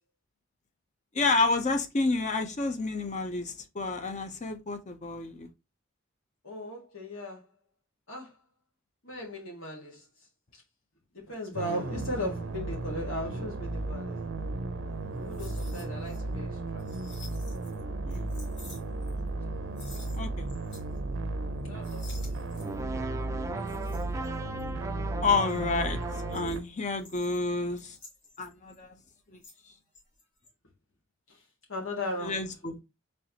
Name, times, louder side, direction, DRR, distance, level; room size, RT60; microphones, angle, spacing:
voice 1, 1.1-5.5 18.1-18.4 20.2-20.5 25.2-26.0 26.3-28.0 28.4-28.9 29.3-29.4 32.2-32.8, left 3 dB, 35° left, 0.7 m, -29 dB
voice 2, 6.4-7.5 8.1-8.4 9.0-10.1 10.5-10.6 11.1-14.2 15.2-16.9 18.5-18.6 19.4-19.5 21.6-22.7 31.7-32.4, left 1 dB, 80° left, 1.8 m, -37 dB
sound 1, 11.5-26.6, right 2 dB, 70° right, 0.6 m, -35 dB
sound 2, 15.1-16.2 16.5-17.8 18.1-19.5 19.7-21.0 21.3-21.5 21.8-22.9 23.6-24.8 25.2-29.7 29.9-30.5, left 3 dB, 60° left, 2.1 m, -53 dB
sound 3, 22.6-26.6, right 2 dB, 15° right, 0.3 m, -38 dB
4.4 x 3.3 x 2.8 m
head